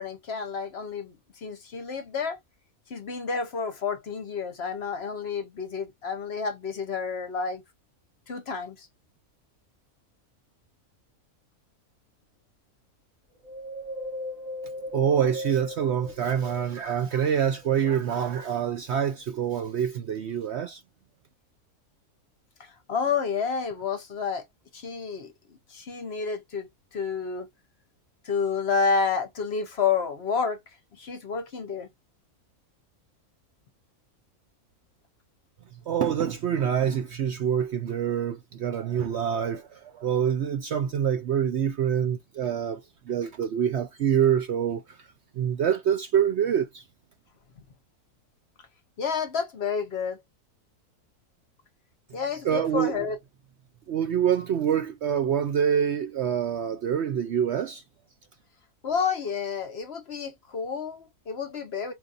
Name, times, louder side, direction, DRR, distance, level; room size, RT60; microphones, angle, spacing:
voice 1, 0.0-2.4 2.9-7.6 8.3-8.9 22.6-24.4 24.7-25.3 25.7-27.5 28.2-30.6 31.0-31.9 49.0-50.2 52.1-53.2 58.8-61.9, left 5 dB, 55° left, 0.9 m, -30 dB
Wind, 13.4-17.0 17.5-18.8 19.3-19.4, equal, 85° right, 2.3 m, -38 dB
voice 2, 14.9-20.8 35.9-45.1 45.3-46.8 52.4-53.1 53.9-57.8, right 8 dB, 65° right, 0.7 m, -26 dB
4.6 x 2.6 x 2.3 m
omnidirectional pair, 1.6 m